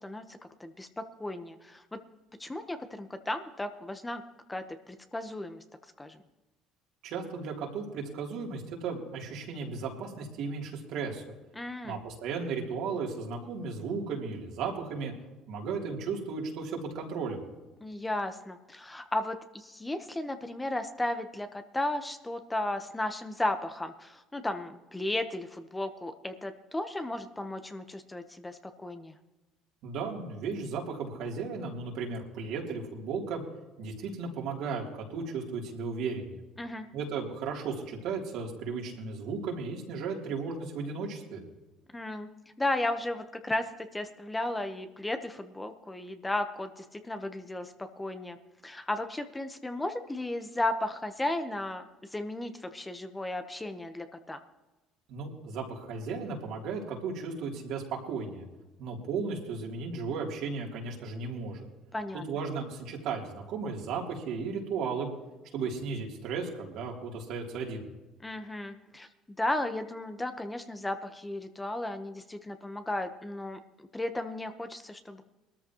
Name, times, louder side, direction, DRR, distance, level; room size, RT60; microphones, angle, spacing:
voice 1, 0.0-2.0 2.4-4.2 4.5-5.6 6.0-6.2 11.5-12.0 17.8-29.2 36.6-36.9 41.9-42.3 42.6-48.4 48.6-51.8 52.1-54.4 61.9-62.2 68.2-69.1 69.4-75.2, left 1 dB, 15° left, 7 dB, 1.1 m, -35 dB
voice 2, 7.0-11.2 11.8-15.1 15.5-17.4 29.8-33.4 33.8-36.4 36.9-41.4 55.1-58.5 58.8-61.7 62.1-65.1 65.5-67.8, right 5 dB, 70° right, -1 dB, 3.2 m, -35 dB
20.0 x 13.5 x 3.1 m, 1.1 s
supercardioid pair, 85°, 0 cm